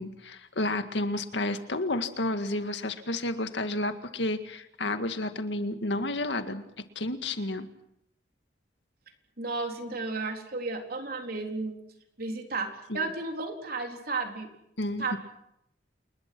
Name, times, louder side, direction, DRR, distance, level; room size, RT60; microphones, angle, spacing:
voice 1, 0.0-6.6 7.0-7.7 12.9-13.1 14.8-15.2, left 2 dB, 80° left, 8 dB, 1.9 m, -31 dB
voice 2, 9.4-11.8 12.2-14.5 15.0-15.2, right 3 dB, 55° right, 3 dB, 3.9 m, -33 dB
28.5 x 21.5 x 6.2 m, 0.77 s
head